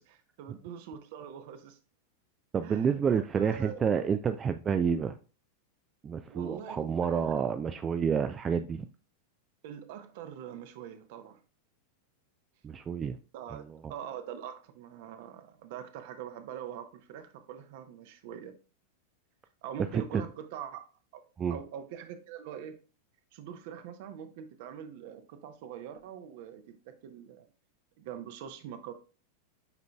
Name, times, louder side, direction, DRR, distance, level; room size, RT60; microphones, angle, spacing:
voice 1, 0.0-1.8 2.6-3.8 6.3-7.3 9.6-11.4 13.3-18.5 19.6-20.8 21.1-21.2 21.5-22.8 23.3-27.5 28.0-28.9, right 9 dB, 50° right, 0.8 m, -43 dB
voice 2, 2.5-5.2 6.0-8.9 12.6-13.2 13.5-13.9 19.9-20.2 21.4-21.6, right 7 dB, 20° right, 0.3 m, -29 dB
8.2 x 5.1 x 2.3 m
figure-of-eight pair, 90°, 0 cm